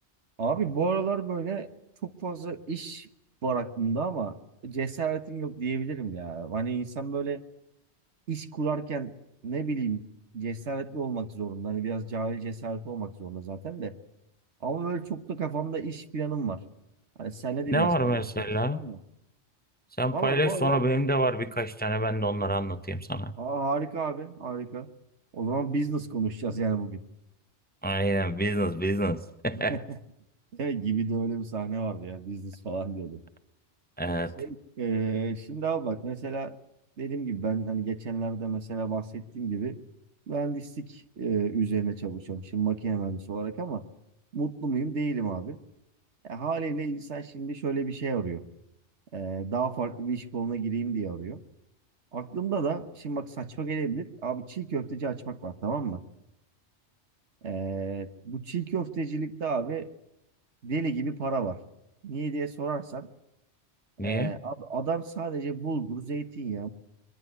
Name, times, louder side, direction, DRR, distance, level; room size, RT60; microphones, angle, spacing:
voice 1, 0.4-1.7 2.0-3.1 3.4-4.3 4.6-7.4 8.3-9.1 9.4-10.0 10.3-13.9 14.6-16.6 17.2-18.2 18.7-19.0 20.1-20.8 23.4-24.9 25.3-27.0 29.7-30.0 30.5-33.2 34.4-36.6 37.0-39.8 40.3-43.9 44.3-45.6 46.2-48.4 49.1-51.4 52.1-56.0 57.4-59.9 60.6-61.6 62.0-63.1 64.0-66.7, right 4 dB, 80° right, 1.7 m, -31 dB
voice 2, 17.7-18.8 20.0-23.3 27.8-29.8 34.0-34.3 64.0-64.3, right 1 dB, 10° left, 0.7 m, -27 dB
23.0 x 21.5 x 8.1 m
omnidirectional pair, 1.2 m